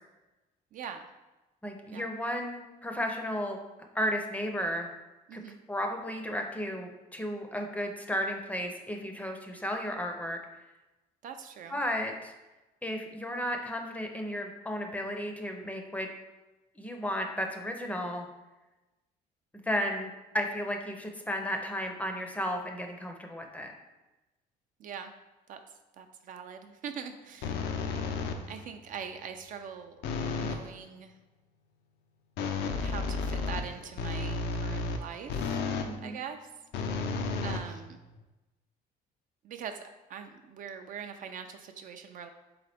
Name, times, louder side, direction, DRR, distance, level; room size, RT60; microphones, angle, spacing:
voice 1, 0.7-1.1 1.9-2.1 5.3-5.6 11.2-11.8 24.8-25.1 25.5-25.6 26.0-27.6 28.5-30.0 30.4-31.1 32.8-35.6 36.0-36.5 37.4-38.0 39.4-42.3, right 7 dB, 50° right, 6 dB, 0.4 m, -42 dB
voice 2, 1.6-3.6 3.9-4.9 5.3-5.4 5.7-10.4 11.7-12.3 12.8-16.1 16.8-18.3 19.7-23.7 35.8-36.2, equal, 10° left, 3 dB, 0.5 m, -33 dB
sound 1, 27.4-28.6 30.0-30.7 32.4-36.0 36.7-38.2, left 4 dB, 80° left, 0.5 m, -32 dB
3.9 x 3.7 x 3.3 m, 1.1 s
cardioid pair, 110°, 17 cm